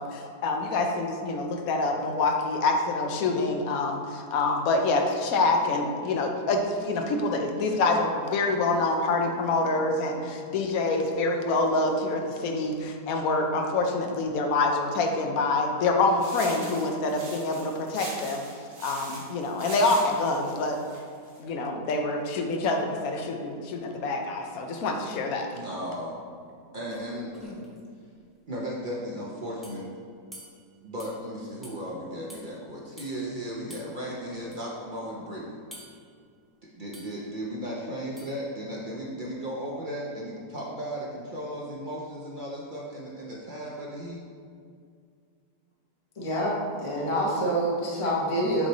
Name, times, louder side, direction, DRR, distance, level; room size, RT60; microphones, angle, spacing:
voice 1, 0.0-18.4 18.8-20.8 21.4-25.5, left 3 dB, 65° left, 3 dB, 0.9 m, -26 dB
sound 1, 16.2-21.4, right 2 dB, 85° right, 1.9 m, -42 dB
voice 2, 25.5-26.2 26.7-27.5 28.5-29.8 30.8-35.6 36.8-44.2, equal, 55° right, -5 dB, 0.5 m, -35 dB
sound 2, 26.5-26.6 26.9-27.8 29.6-29.8 30.3-30.6 31.0-31.2 31.6-31.8 32.3-32.5 33.0-33.1 33.7-33.9 34.5-34.6 35.7-36.0 36.9-37.2 38.2-38.4, left 1 dB, ahead, 0.7 m, -45 dB
voice 3, 46.2-48.7, right 1 dB, 25° left, -5 dB, 0.9 m, -27 dB
7.3 x 3.2 x 4.0 m, 2.3 s
omnidirectional pair, 1.9 m